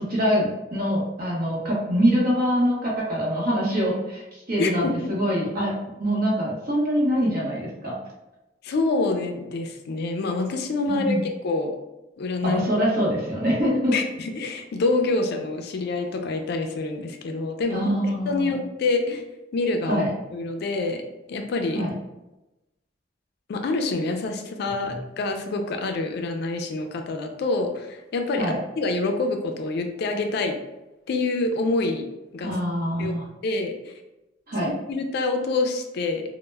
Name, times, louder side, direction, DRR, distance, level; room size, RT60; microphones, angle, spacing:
voice 1, 0.0-5.7 6.0-7.9 10.9-11.2 12.4-13.9 17.7-18.6 19.9-20.1 21.7-21.9 24.9-25.0 28.4-28.6 32.4-33.2 34.5-34.7, equal, 55° right, -4 dB, 0.8 m, -24 dB
voice 2, 4.6-5.1 8.6-11.7 12.2-12.6 13.9-19.2 19.5-20.1 20.3-21.0 21.3-21.8 23.5-30.6 31.1-32.0 32.3-32.6 33.0-33.2 33.4-33.9 34.6-36.2, left 3 dB, 60° left, 5 dB, 0.3 m, -26 dB
2.1 x 2.0 x 3.2 m, 0.99 s
head